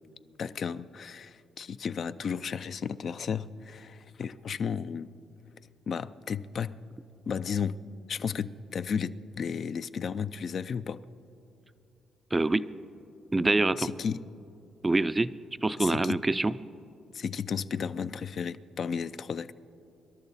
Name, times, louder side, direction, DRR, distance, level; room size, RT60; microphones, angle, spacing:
voice 1, 0.4-5.1 5.9-6.8 7.3-7.8 8.1-11.0 13.8-14.2 15.8-16.2 17.1-19.5, left 6 dB, 55° left, 13 dB, 0.4 m, -33 dB
voice 2, 12.3-12.7 13.3-13.9 14.8-15.3 15.6-16.5, right 2 dB, 20° right, 14 dB, 0.4 m, -25 dB
25.5 x 11.5 x 4.1 m, 2.7 s
cardioid pair, 90°, 0 cm